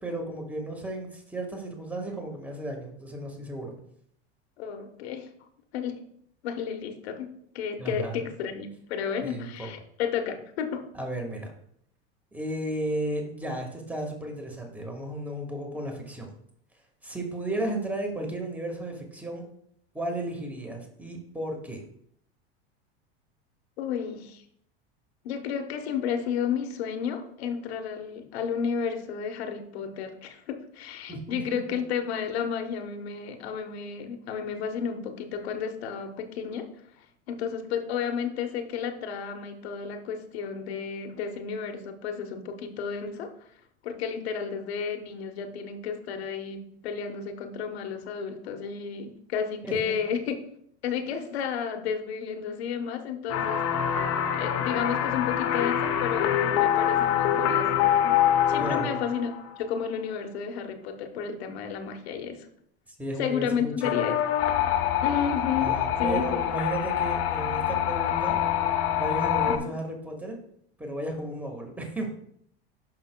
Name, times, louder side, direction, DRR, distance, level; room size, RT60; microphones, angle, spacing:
voice 1, 0.0-3.7 7.8-8.3 9.2-9.7 10.9-11.5 12.3-16.3 17.0-19.4 19.9-21.8 31.1-31.8 49.6-49.9 58.6-59.0 63.0-64.2 65.6-68.4 68.9-70.4 70.8-72.1, right 1 dB, 5° right, 2 dB, 1.6 m, -34 dB
voice 2, 4.6-5.3 5.7-6.0 6.4-10.8 23.8-24.4 25.2-36.7 37.0-43.3 43.8-50.4 50.8-54.1 54.3-58.2 58.5-59.3 59.6-62.5 63.2-64.2 65.0-66.4 69.5-69.7, left 7 dB, 80° left, 5 dB, 1.2 m, -32 dB
sound 1, 53.3-59.5 63.8-69.6, left 10 dB, 50° left, 1.0 m, -25 dB
10.5 x 5.7 x 2.3 m, 0.69 s
hypercardioid pair, 100°, 31 cm